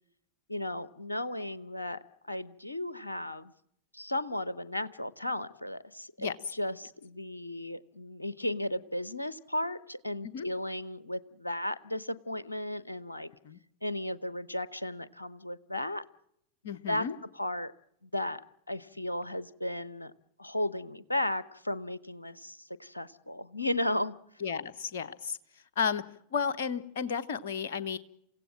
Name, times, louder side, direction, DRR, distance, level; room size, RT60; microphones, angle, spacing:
voice 1, 0.5-2.0 2.2-3.5 3.9-13.3 13.8-16.0 16.9-17.1 17.3-17.7 18.0-18.4 18.7-20.1 20.4-24.2, left 1 dB, 85° left, 18 dB, 0.8 m, -35 dB
voice 2, 16.6-17.1 24.4-25.4 25.8-26.0 26.3-28.0, left 6 dB, 55° left, 16 dB, 1.1 m, -33 dB
28.5 x 16.5 x 7.5 m, 0.74 s
figure-of-eight pair, 90°, 0 cm